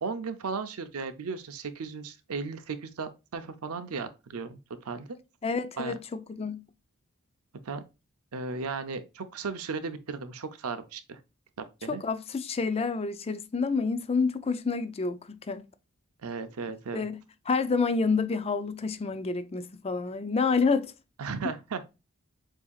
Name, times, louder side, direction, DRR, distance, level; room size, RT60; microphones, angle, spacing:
voice 1, 0.0-5.1 5.8-5.9 7.6-7.8 8.3-11.2 11.6-12.0 16.2-17.0 21.2-21.8, right 4 dB, 85° right, 0.6 m, -35 dB
voice 2, 5.4-6.7 11.9-15.7 16.9-20.9, left 4 dB, 30° left, 0.4 m, -28 dB
7.1 x 2.8 x 2.3 m
head